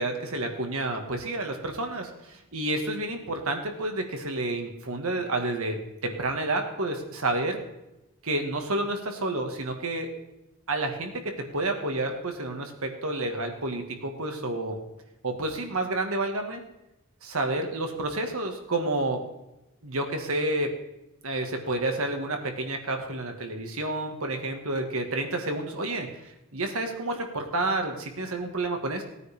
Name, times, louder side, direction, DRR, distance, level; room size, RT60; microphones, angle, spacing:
voice 1, 0.0-7.6 8.3-10.1 10.7-14.8 15.2-16.6 17.2-19.2 19.8-20.7 21.2-29.0, right 2 dB, 70° right, 4 dB, 1.8 m, -30 dB
17.5 x 9.2 x 3.6 m, 0.94 s
head